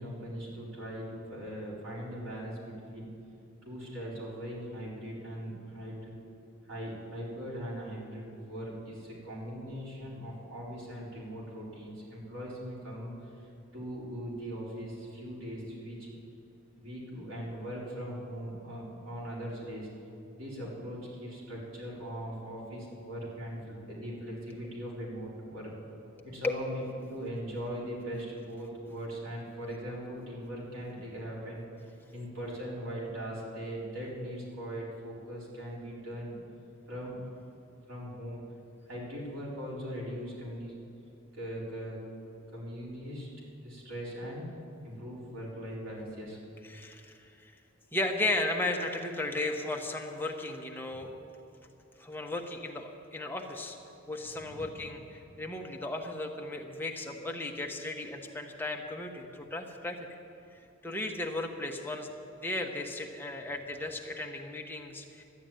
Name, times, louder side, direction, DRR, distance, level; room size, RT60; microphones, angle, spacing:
voice 1, 0.0-3.1 3.6-6.1 6.7-13.5 13.7-16.2 16.8-19.9 20.4-25.7 26.2-31.6 32.1-36.4 36.9-37.2 37.9-38.4 38.8-40.7 41.4-43.3 43.6-44.4 44.8-46.4 50.9-51.0 54.4-54.6, equal, 80° right, -5 dB, 4.5 m, -40 dB
voice 2, 46.7-47.5 47.9-51.2 52.0-53.8 54.1-60.1 60.8-62.1 62.4-65.2, left 2 dB, 10° left, 1 dB, 1.1 m, -35 dB
12.5 x 10.5 x 9.0 m, 2.7 s
head